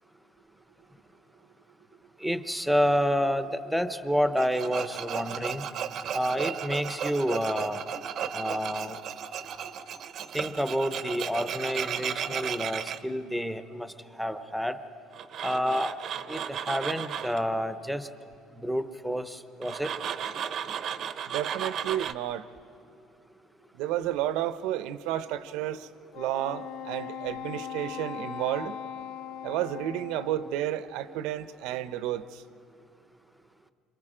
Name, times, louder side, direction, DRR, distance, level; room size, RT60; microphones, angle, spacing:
voice 1, 2.2-5.6 6.1-7.8 8.3-9.0 10.3-13.9 14.2-14.8 15.4-15.9 16.3-18.1 18.5-19.9, equal, ahead, 10 dB, 0.7 m, -29 dB
Tools, 4.4-13.0 15.1-17.4 19.6-22.1, right 8 dB, 40° right, 0.6 m, -34 dB
voice 2, 21.3-22.5 23.7-25.9 26.1-28.7 29.4-32.4, right 12 dB, 75° right, 13 dB, 0.7 m, -31 dB
Wind instrument woodwind instrument, 26.1-30.7, left 9 dB, 85° left, 0.7 m, -39 dB
30.0 x 27.0 x 5.0 m, 2.7 s
cardioid pair, 175°, 0 cm